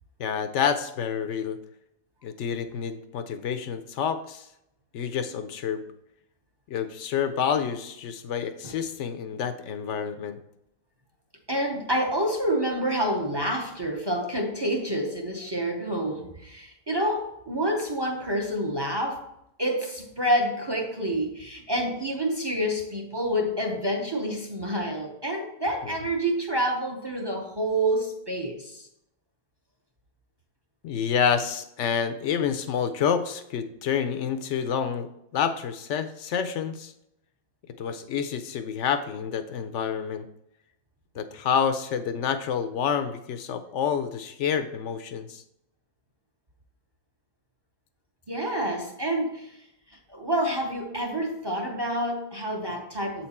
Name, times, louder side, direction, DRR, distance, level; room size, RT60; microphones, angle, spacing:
voice 1, 0.2-1.6 2.2-4.5 4.9-5.8 6.7-10.4 30.8-36.9 37.8-40.3 41.1-45.4, left 7 dB, 70° left, 10 dB, 0.7 m, -28 dB
voice 2, 11.5-19.3 19.6-28.9 48.3-49.6 50.1-53.3, right 1 dB, 35° right, 1 dB, 0.4 m, -28 dB
7.8 x 4.4 x 4.2 m, 0.80 s
omnidirectional pair, 1.7 m